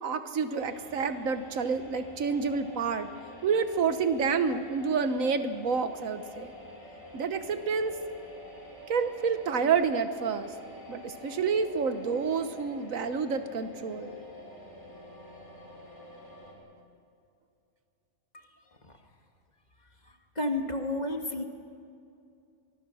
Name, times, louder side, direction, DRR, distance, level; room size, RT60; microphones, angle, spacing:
voice 1, 0.0-3.1 3.4-6.5 7.1-8.0 8.9-10.5 10.9-14.1, right 5 dB, 90° right, 9 dB, 1.6 m, -29 dB
sound 1, 0.6-16.5, left 2 dB, 15° left, 4.4 m, -47 dB
voice 2, 20.4-21.4, left 2 dB, 35° left, 4 dB, 1.7 m, -30 dB
25.0 x 20.5 x 6.3 m, 2.5 s
omnidirectional pair, 1.4 m